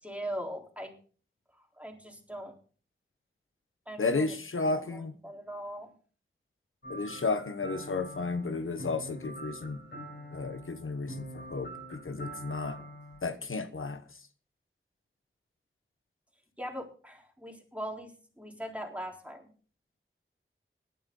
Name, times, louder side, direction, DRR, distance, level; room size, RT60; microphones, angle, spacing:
voice 1, 0.0-0.9 1.8-2.5 3.9-5.9 16.6-19.5, equal, 5° right, 3.9 m, -40 dB
voice 2, 4.0-5.1 6.9-9.8 10.3-12.8 13.2-14.0, left 3 dB, 80° left, 1.1 m, -33 dB
sound 1, 6.8-13.2, right 1 dB, 60° left, 5.8 m, -45 dB
17.5 x 11.0 x 3.9 m
wide cardioid pair, 50°, 21 cm